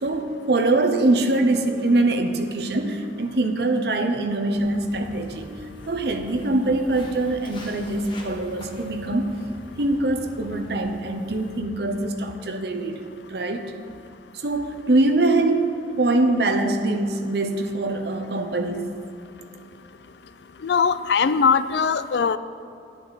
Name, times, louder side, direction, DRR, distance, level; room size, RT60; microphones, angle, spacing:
voice 1, 0.0-9.3 9.8-13.0 13.3-13.7 14.3-18.9, right 2 dB, 60° right, 6 dB, 0.9 m, -23 dB
Walk footsteps, 4.6-11.6, equal, 25° left, 1.4 m, -43 dB
voice 2, 20.6-22.4, left 6 dB, 70° left, 14 dB, 0.4 m, -20 dB
11.0 x 10.5 x 4.1 m, 2.8 s
head